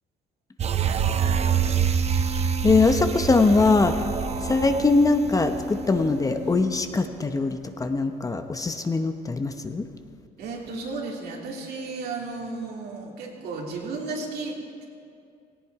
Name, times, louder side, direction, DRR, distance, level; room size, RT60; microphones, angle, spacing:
sound 1, 0.6-6.2 6.6-6.7, right 7 dB, 40° right, 0.8 m, -26 dB
sound 2, 1.0-6.8, left 4 dB, 25° right, 1.8 m, -36 dB
voice 1, 2.6-3.9 4.4-9.9, left 3 dB, 20° left, 7 dB, 0.9 m, -22 dB
voice 2, 10.4-14.8, right 3 dB, 70° right, -1 dB, 3.0 m, -34 dB
17.5 x 17.0 x 4.8 m, 2.4 s
cardioid pair, 110°, 17 cm